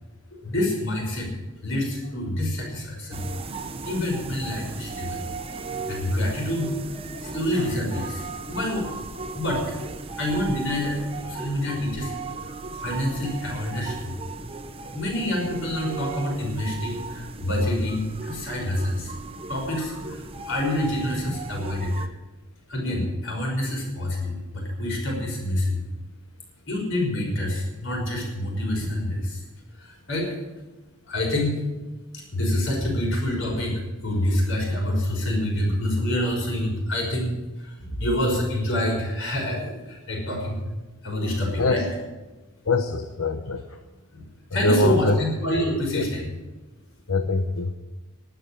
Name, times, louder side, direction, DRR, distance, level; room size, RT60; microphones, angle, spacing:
voice 1, 0.3-1.3 1.6-3.6 3.8-5.2 5.9-6.7 7.2-8.9 9.3-9.7 10.2-12.1 12.8-14.1 14.9-19.1 19.5-22.0 22.7-25.9 26.7-29.4 29.8-30.4 31.1-31.6 32.1-40.6 41.0-41.9 44.1-44.2 44.5-46.3, left 1 dB, 60° left, -1 dB, 5.8 m, -27 dB
sound 1, 3.1-22.1, right 3 dB, 25° right, 0.9 m, -36 dB
voice 2, 42.7-43.6 44.6-45.2 45.9-46.1 47.1-47.7, left 2 dB, 80° left, 7 dB, 0.9 m, -23 dB
12.0 x 9.4 x 10.0 m, 1.2 s
head